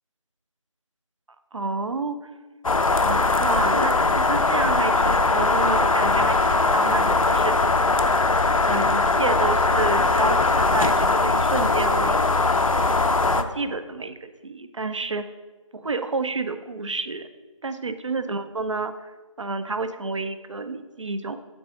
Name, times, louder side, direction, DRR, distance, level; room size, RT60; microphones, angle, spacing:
voice 1, 1.5-2.3 2.9-7.6 8.6-12.7 13.0-15.3 15.7-17.3 17.6-19.1 19.4-21.4, right 3 dB, 60° right, 10 dB, 0.5 m, -29 dB
sound 1, 2.6-13.4, left 3 dB, 75° left, 0.5 m, -20 dB
7.7 x 3.8 x 3.6 m, 1.3 s
figure-of-eight pair, 170°, 17 cm